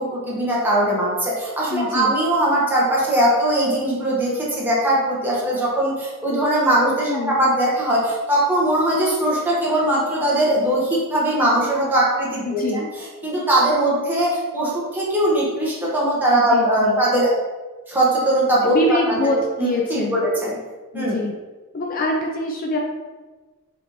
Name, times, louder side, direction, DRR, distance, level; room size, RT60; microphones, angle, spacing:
voice 1, 0.0-12.8 13.2-17.3 17.9-19.3 19.6-20.5 20.9-21.2, right 1 dB, 10° right, -6 dB, 1.0 m, -20 dB
voice 2, 1.7-2.1 7.1-7.4 12.5-12.9 16.3-17.0 18.6-20.3 20.9-21.3 21.7-22.8, left 1 dB, 40° left, 1 dB, 0.4 m, -24 dB
3.9 x 3.3 x 3.0 m, 1.3 s
head